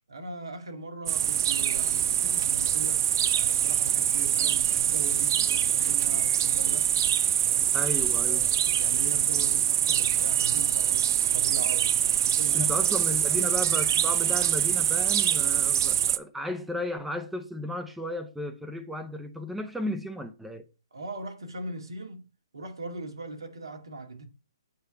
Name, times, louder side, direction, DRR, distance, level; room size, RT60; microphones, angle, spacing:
voice 1, 0.1-3.0 3.4-6.9 7.5-7.8 8.3-8.5 8.8-12.9 13.3-14.0 20.9-22.2 22.5-24.3, right 2 dB, 80° right, 2.1 m, -40 dB
sound 1, 1.1-16.2, right 10 dB, 50° right, 0.4 m, -24 dB
voice 2, 7.7-8.5 12.5-20.6, left 1 dB, 5° right, 0.8 m, -34 dB
9.1 x 3.3 x 5.5 m
hypercardioid pair, 140°, 2 cm